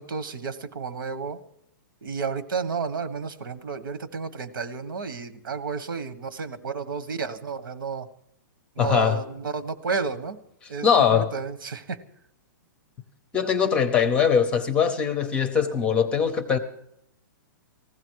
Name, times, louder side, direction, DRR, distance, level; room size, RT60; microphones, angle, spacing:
voice 1, 0.0-1.4 2.0-8.1 8.8-10.4 10.7-10.9 11.1-12.0, right 5 dB, 85° right, 1.6 m, -31 dB
voice 2, 8.8-9.2 10.8-11.3 13.3-16.6, left 7 dB, 10° left, 0.7 m, -21 dB
19.5 x 15.0 x 4.8 m
hypercardioid pair, 175°, 11 cm